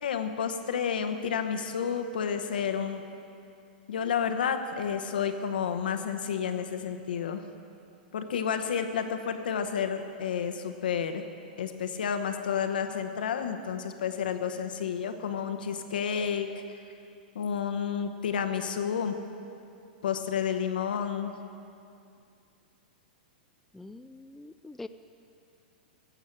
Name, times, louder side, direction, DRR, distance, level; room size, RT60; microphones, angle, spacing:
voice 1, 0.0-3.0 3.9-7.4 8.1-11.2 11.6-16.6 17.3-19.2 20.0-21.3, left 7 dB, 75° left, 8 dB, 1.1 m, -30 dB
voice 2, 23.7-24.9, left 2 dB, 5° left, 10 dB, 0.3 m, -44 dB
16.0 x 7.2 x 7.4 m, 2.5 s
hypercardioid pair, 115°, 5 cm